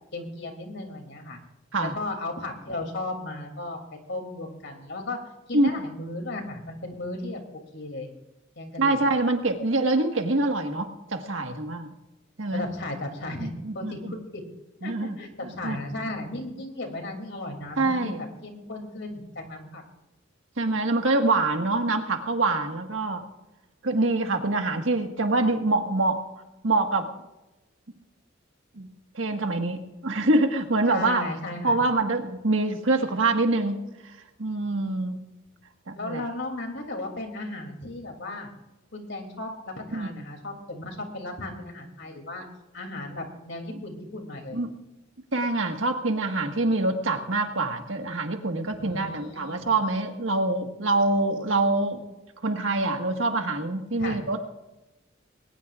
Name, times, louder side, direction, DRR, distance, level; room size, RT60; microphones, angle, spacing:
voice 1, 0.1-1.4 1.8-3.8 4.1-5.2 5.5-7.4 7.7-8.1 8.6-9.0 12.5-14.4 14.8-19.8 30.9-31.8 35.9-38.5 38.9-42.4 42.7-44.6 48.8-49.7 54.0-54.2, left 2 dB, 65° left, 3 dB, 2.9 m, -35 dB
voice 2, 8.8-11.9 12.4-12.7 13.4-14.2 14.8-15.2 15.6-15.8 17.8-18.2 20.6-23.2 23.8-26.2 26.6-27.1 28.8-28.9 29.1-31.2 31.6-33.8 34.4-35.2 35.9-36.2 39.9-40.1 44.5-44.7 45.3-52.0 52.4-54.4, right 2 dB, 75° right, 5 dB, 1.7 m, -25 dB
21.0 x 19.0 x 2.5 m, 0.98 s
head